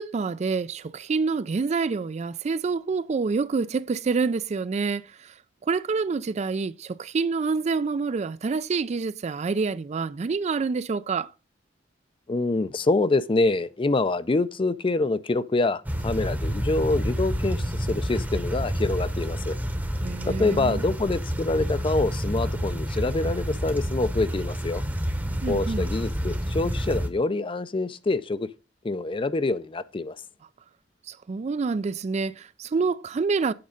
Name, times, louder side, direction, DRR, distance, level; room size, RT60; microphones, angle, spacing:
voice 1, 0.0-5.1 5.6-11.3 20.0-20.8 25.4-25.9 31.3-33.5, right 4 dB, 35° right, 0.4 m, -27 dB
voice 2, 12.3-19.6 20.3-24.8 25.5-28.5 28.8-30.1, left 2 dB, 30° left, 0.5 m, -26 dB
sound 1, 15.8-27.1, equal, 10° right, 0.9 m, -29 dB
8.7 x 5.3 x 5.1 m
head